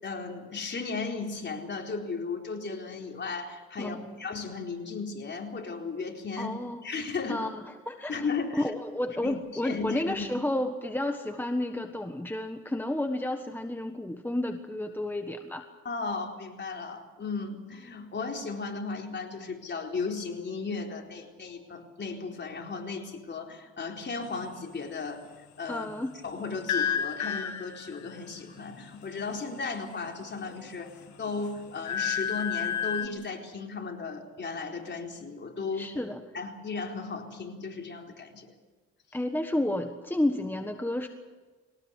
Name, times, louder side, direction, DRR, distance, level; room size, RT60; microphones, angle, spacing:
voice 1, 0.0-6.5 6.8-7.5 8.1-8.7 9.2-9.4 9.6-10.3 15.8-25.2 25.6-25.9 26.2-30.9 31.2-35.9 36.3-38.5, left 4 dB, 35° left, 1 dB, 4.2 m, -35 dB
voice 2, 3.8-4.2 6.4-6.8 7.3-8.3 8.5-15.6 25.7-26.2 35.7-36.2 39.1-41.1, left 1 dB, 5° left, 5 dB, 1.4 m, -31 dB
sound 1, 26.7-28.2 30.1-30.9 31.3-33.1, left 8 dB, 70° left, 1.6 m, -31 dB
22.5 x 19.0 x 8.4 m, 1.3 s
cardioid pair, 90°, 30 cm